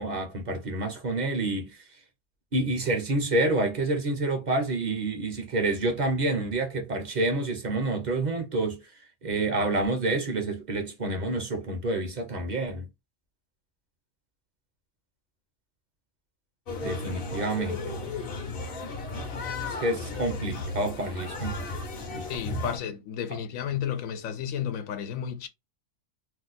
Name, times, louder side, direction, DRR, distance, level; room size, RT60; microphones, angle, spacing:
voice 1, 0.0-1.9 2.5-8.9 9.2-12.9 16.8-18.0 19.7-21.5 22.1-22.3 22.6-22.7 23.3-23.4, right 2 dB, 40° right, 0.8 m, -28 dB
sound 1, 16.7-22.8, left 2 dB, 50° left, 0.8 m, -34 dB
voice 2, 22.3-25.5, left 9 dB, 80° left, 1.0 m, -32 dB
2.6 x 2.2 x 3.8 m
omnidirectional pair, 1.4 m